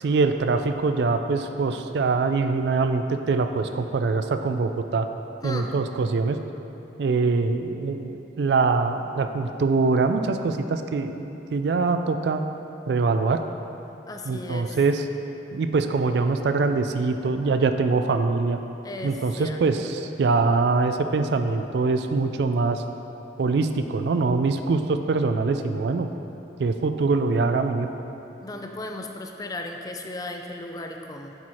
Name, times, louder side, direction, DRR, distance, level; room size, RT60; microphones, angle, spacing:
voice 1, 0.0-5.1 5.4-6.4 7.0-12.4 12.9-13.4 14.2-15.1 15.5-18.6 19.0-22.8 23.4-26.1 26.6-27.9, right 4 dB, 70° right, 7 dB, 0.4 m, -23 dB
voice 2, 14.1-14.8 18.8-19.9 28.4-31.4, left 2 dB, 20° left, 3 dB, 0.4 m, -36 dB
8.0 x 4.7 x 4.3 m, 3.0 s
head